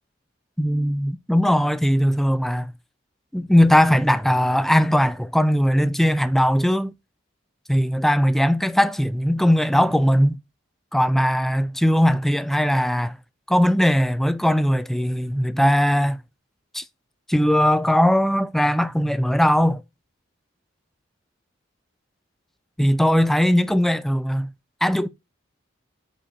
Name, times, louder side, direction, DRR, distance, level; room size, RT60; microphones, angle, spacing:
voice 1, 0.6-2.7 3.3-6.9 7.7-10.4 10.9-13.2 13.5-16.2 16.7-16.8 17.3-19.8 22.8-24.5 24.8-25.1, equal, ahead, 0.4 m, -19 dB
7.7 x 5.0 x 4.2 m
head